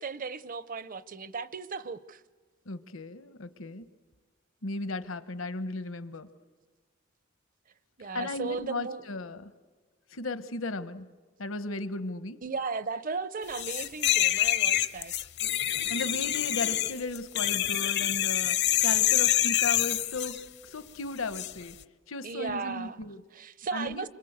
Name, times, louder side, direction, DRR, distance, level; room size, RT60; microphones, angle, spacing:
voice 1, 0.0-2.2 8.0-9.0 12.4-15.1 22.2-23.0 23.3-24.1, right 4 dB, 40° right, 0.7 m, -36 dB
voice 2, 2.7-3.8 4.6-6.3 8.1-9.5 10.1-11.1 11.4-12.4 15.9-18.6 18.8-21.7 22.1-23.2 23.7-24.1, left 2 dB, 75° left, 1.1 m, -35 dB
sound 1, 13.5-20.4 21.3-21.5, left 13 dB, 55° left, 0.7 m, -26 dB
26.5 x 25.0 x 8.1 m
head